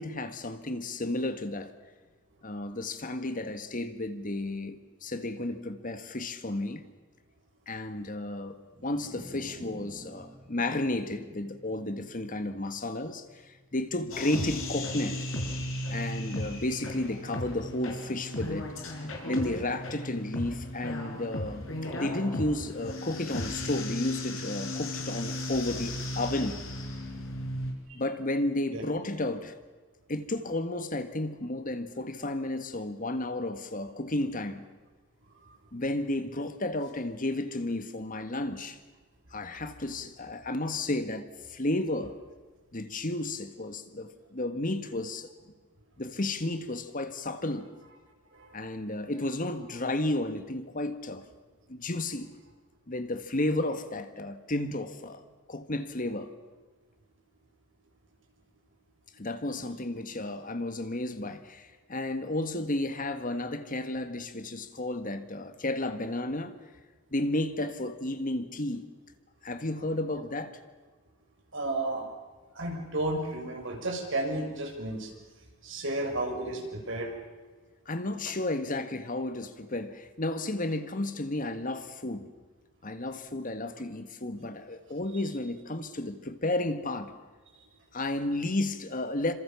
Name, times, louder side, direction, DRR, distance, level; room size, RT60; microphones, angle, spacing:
voice 1, 0.0-1.7 2.4-6.8 7.7-8.6 8.8-15.2 15.9-18.7 19.2-21.7 21.9-26.6 27.9-29.5 30.1-34.6 35.7-38.8 39.3-42.2 42.7-45.3 46.0-47.7 48.5-51.3 51.7-52.3 52.9-55.2 55.5-56.3 59.2-66.5 67.1-68.9 69.4-70.6 77.8-82.3 82.8-87.1 87.9-89.3, left 2 dB, 40° left, 1.8 m, -32 dB
sound 1, 8.6-15.0, equal, 30° right, 4.9 m, -52 dB
sound 2, 14.1-27.7, left 1 dB, 70° left, 6.2 m, -36 dB
voice 2, 71.5-72.0 72.5-75.1 75.6-77.1, right 2 dB, 65° right, 6.7 m, -32 dB
28.5 x 26.5 x 7.2 m
head